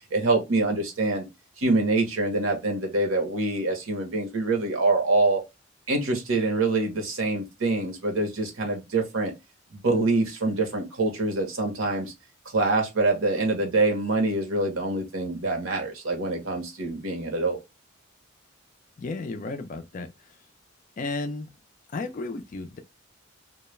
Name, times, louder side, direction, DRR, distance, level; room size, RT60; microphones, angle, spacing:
voice 1, 0.1-1.2 1.6-5.4 5.9-9.3 9.7-12.1 12.5-17.6, right 2 dB, 80° right, 0.9 m, -25 dB
voice 2, 19.0-20.4 21.0-21.5 21.9-22.8, left 3 dB, 40° left, 0.3 m, -33 dB
2.3 x 2.0 x 3.0 m
head